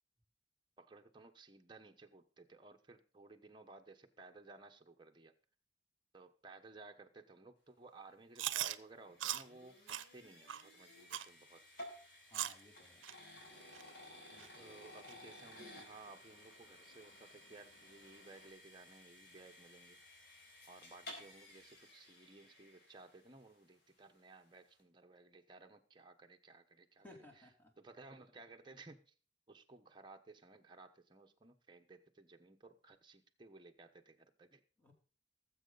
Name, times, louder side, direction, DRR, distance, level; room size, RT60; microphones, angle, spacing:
voice 1, 0.8-5.3 6.1-11.6 14.5-20.0 20.7-27.5 27.8-29.1 29.5-34.6, right 3 dB, 25° right, 3 dB, 1.1 m, -58 dB
sound 1, 8.3-23.5, left 1 dB, 60° left, 4.7 m, -56 dB
Chewing mastication, 8.4-8.8 9.2-9.4 9.9-10.0 10.5-10.6 11.1-11.3 11.8-11.9 12.3-12.6 13.0-13.1 13.7-13.8 14.4-14.5 15.1-15.2, right 12 dB, 80° right, 0.6 m, -39 dB
voice 2, 12.3-13.0 14.3-14.5 27.0-27.7 34.8-34.9, left 1 dB, 10° left, 1 dB, 3.1 m, -59 dB
Boat Water vehicle, 13.5-18.5, left 2 dB, 85° left, 4.2 m, -67 dB
18.5 x 7.8 x 4.0 m, 0.39 s
head